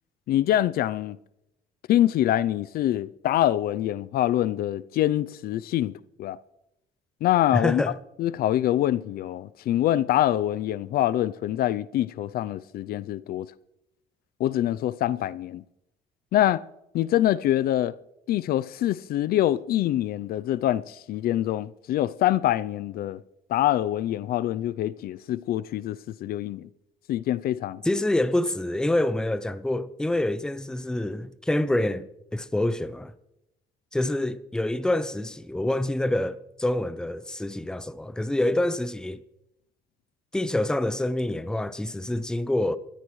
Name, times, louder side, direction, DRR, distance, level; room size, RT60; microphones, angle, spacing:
voice 1, 0.3-1.2 1.9-5.9 6.2-6.4 7.2-7.8 8.2-13.5 14.4-15.6 16.3-16.6 16.9-17.9 18.3-23.2 23.5-26.7 27.1-27.8, left 13 dB, 65° left, 0.5 m, -25 dB
voice 2, 7.5-7.9 27.8-32.1 32.3-33.1 33.9-39.2 40.3-42.8, left 1 dB, 5° left, 0.6 m, -26 dB
21.0 x 14.0 x 3.2 m
cardioid pair, 110°, 17 cm